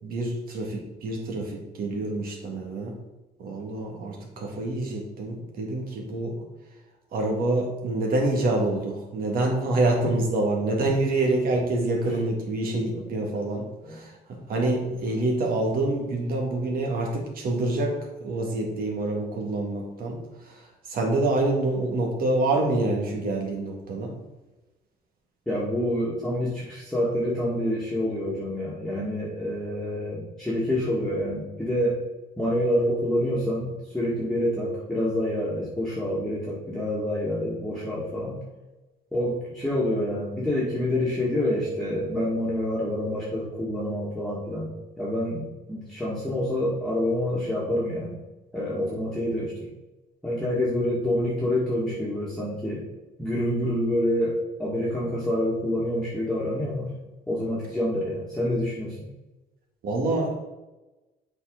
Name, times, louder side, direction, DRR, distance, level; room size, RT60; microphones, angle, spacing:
voice 1, 0.0-2.9 3.4-6.3 7.1-18.0 18.2-20.2 20.9-24.1 59.8-60.3, right 2 dB, 60° right, 1 dB, 2.1 m, -26 dB
voice 2, 25.5-32.0 32.4-38.4 39.1-48.1 48.5-49.7 50.2-52.9 53.2-56.9 57.3-59.0, left 1 dB, 5° left, -7 dB, 1.9 m, -27 dB
7.7 x 4.7 x 3.9 m, 1.1 s
cardioid pair, 110°, 17 cm